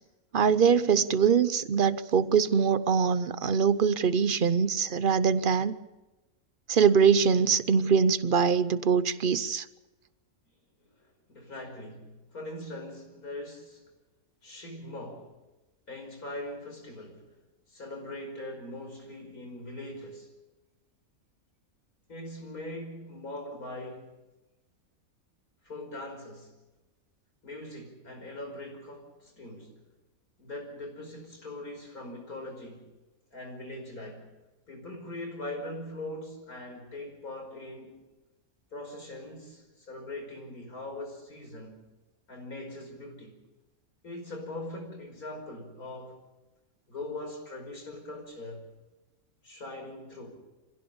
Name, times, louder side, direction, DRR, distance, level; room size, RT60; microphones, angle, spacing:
voice 1, 0.3-5.7 6.7-9.6, right 6 dB, 45° right, 0.8 m, -23 dB
voice 2, 10.8-13.8 14.4-15.3 15.9-17.2 17.7-20.3 22.1-24.1 25.6-26.5 27.4-29.7 30.4-32.9 33.3-34.3 34.7-38.0 38.7-41.8 42.3-43.4 44.0-46.2 46.9-48.6 49.4-50.3, left 1 dB, 85° left, 5.8 m, -41 dB
25.5 x 16.5 x 7.1 m
omnidirectional pair, 1.5 m